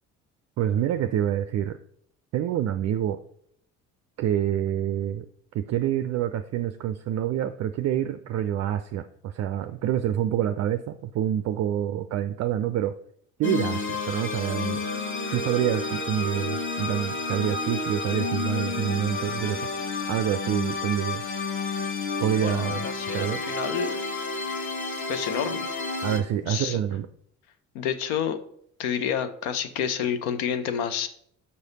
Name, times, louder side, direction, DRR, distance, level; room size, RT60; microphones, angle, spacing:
voice 1, 0.6-1.8 2.3-3.2 4.2-5.2 5.5-12.9 13.4-14.8 15.3-19.6 20.1-21.2 22.2-22.9 23.1-23.4 26.0-27.1, right 10 dB, 45° right, 10 dB, 0.4 m, -27 dB
sound 1, 13.4-26.2, left 3 dB, 30° left, 1.1 m, -30 dB
voice 2, 22.4-24.0 25.1-25.8 26.4-26.8 27.7-28.4 28.8-31.1, left 8 dB, 70° left, 10 dB, 0.7 m, -29 dB
5.5 x 4.9 x 4.0 m, 0.66 s
hypercardioid pair, 50°, 40 cm